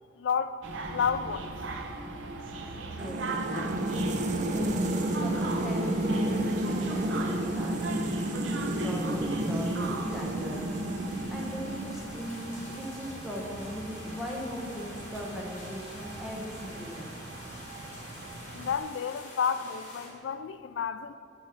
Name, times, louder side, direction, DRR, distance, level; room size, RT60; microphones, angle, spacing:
voice 1, 0.2-0.6 0.9-1.5 18.5-21.2, left 7 dB, 70° left, 0.3 m, -30 dB
sound 1, 0.6-18.8, right 3 dB, 90° right, 0.8 m, -40 dB
voice 2, 2.8-3.9 4.5-5.3 5.6-7.9 8.5-10.6 11.3-12.4 12.7-17.1, equal, ahead, 1.1 m, -38 dB
sound 2, 3.0-12.3, right 1 dB, 40° right, 0.4 m, -31 dB
sound 3, 3.8-20.1, left 1 dB, 40° left, 2.5 m, -48 dB
8.7 x 4.6 x 7.4 m
head